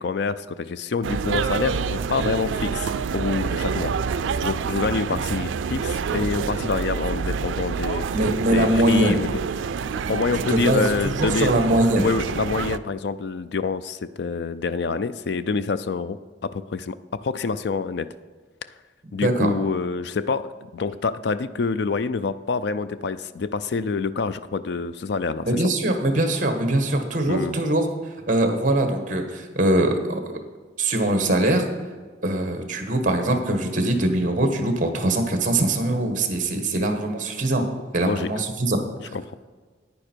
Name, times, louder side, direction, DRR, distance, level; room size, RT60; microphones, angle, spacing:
voice 1, 0.0-3.9 4.4-8.1 8.4-9.4 10.1-11.5 12.0-18.1 19.1-25.6 27.3-27.6 38.0-38.3 39.1-39.4, left 4 dB, 60° left, 14 dB, 0.4 m, -27 dB
sound 1, 1.0-12.8, right 6 dB, 90° right, 0.4 m, -27 dB
voice 2, 8.1-9.2 10.3-12.1 19.1-19.5 25.5-27.8 28.3-30.2 30.8-31.7 32.2-37.7 37.9-38.8, right 1 dB, 45° right, 6 dB, 1.3 m, -22 dB
9.9 x 9.5 x 4.5 m, 1.4 s
head